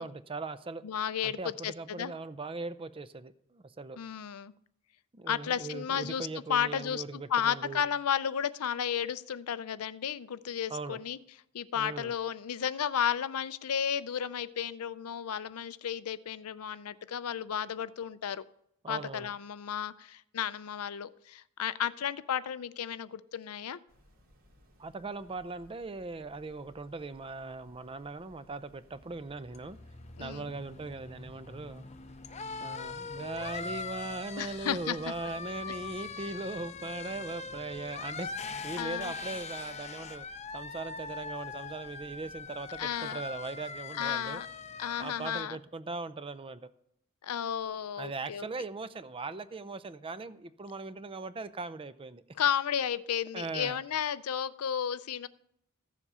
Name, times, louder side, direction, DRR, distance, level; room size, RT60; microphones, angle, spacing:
voice 1, 0.0-0.8 1.2-4.0 5.1-7.8 10.7-11.0 11.8-12.1 18.8-19.3 24.8-29.8 30.2-31.8 32.6-40.3 40.5-44.4 45.0-46.7 48.0-52.2 53.3-53.8, right 3 dB, 25° right, 0.5 m, -39 dB
voice 2, 0.8-1.4 1.6-2.1 4.0-4.5 5.3-11.2 11.5-18.4 18.9-23.8 30.2-30.5 34.4-35.0 38.8-39.1 42.8-43.2 44.0-44.5 44.8-45.6 47.2-48.5 52.4-55.3, left 8 dB, 80° left, 0.5 m, -33 dB
sound 1, 23.9-43.0, equal, 65° right, 2.5 m, -62 dB
sound 2, 29.0-45.4, left 5 dB, 30° left, 0.6 m, -42 dB
14.5 x 7.4 x 5.5 m
head